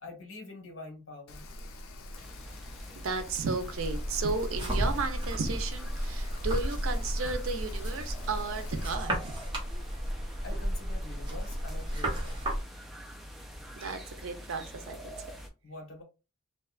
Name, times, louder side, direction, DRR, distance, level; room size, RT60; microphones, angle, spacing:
voice 1, 0.0-1.4 10.4-12.5 13.5-13.6 15.6-16.0, left 2 dB, 70° left, 1.0 m, -46 dB
Rain, 1.3-8.9, left 2 dB, 90° left, 0.5 m, -45 dB
sound 1, 2.1-15.5, equal, ahead, 0.4 m, -46 dB
voice 2, 2.9-9.3 13.8-15.0, right 4 dB, 80° right, 0.5 m, -34 dB
sound 2, 3.7-12.6, equal, 20° right, 0.9 m, -33 dB
2.7 x 2.3 x 2.3 m
head